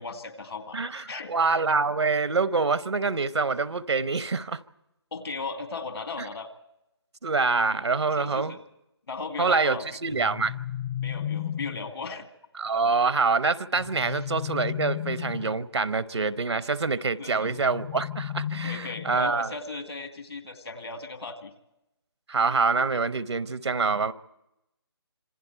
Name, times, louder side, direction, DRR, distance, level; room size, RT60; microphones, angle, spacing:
voice 1, 0.0-1.3 5.1-6.5 8.1-8.6 9.1-9.8 11.0-12.3 14.0-14.1 17.2-17.5 18.6-21.5, left 4 dB, 65° left, 2.3 m, -37 dB
voice 2, 0.7-4.6 7.2-8.6 9.4-10.5 12.6-19.5 22.3-24.1, right 4 dB, 80° right, 0.9 m, -26 dB
sound 1, 10.1-11.9 13.8-15.6 17.5-19.4, left 10 dB, 30° left, 0.7 m, -34 dB
26.5 x 25.0 x 4.5 m
figure-of-eight pair, 150°, 14 cm